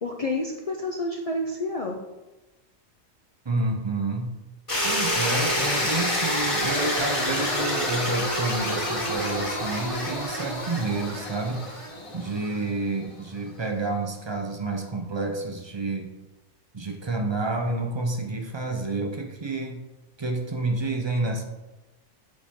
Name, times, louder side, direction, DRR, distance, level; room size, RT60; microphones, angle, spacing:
voice 1, 0.0-2.0, left 2 dB, 60° left, 1 dB, 0.3 m, -29 dB
voice 2, 3.5-4.4 4.8-11.7 12.1-16.1 16.7-19.8 20.2-21.4, right 2 dB, 45° right, 2 dB, 0.3 m, -29 dB
sound 1, 4.7-12.7, left 1 dB, 25° left, 1.3 m, -28 dB
7.8 x 4.2 x 3.6 m, 1.1 s
omnidirectional pair, 1.4 m